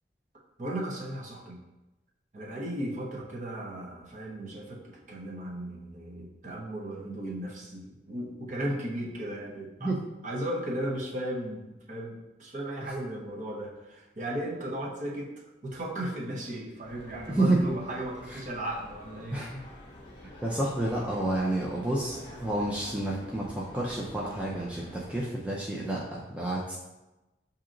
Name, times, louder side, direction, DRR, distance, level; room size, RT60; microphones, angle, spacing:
voice 1, 0.6-1.6 2.3-9.9 10.2-15.3 15.6-19.4, right 1 dB, 45° right, -3 dB, 0.8 m, -36 dB
sound 1, 16.8-25.2, left 1 dB, 30° left, 0.9 m, -48 dB
voice 2, 17.3-17.6 18.3-18.4 19.3-19.6 20.2-26.8, right 2 dB, 5° right, -5 dB, 0.4 m, -30 dB
7.0 x 2.8 x 2.5 m, 1.0 s
head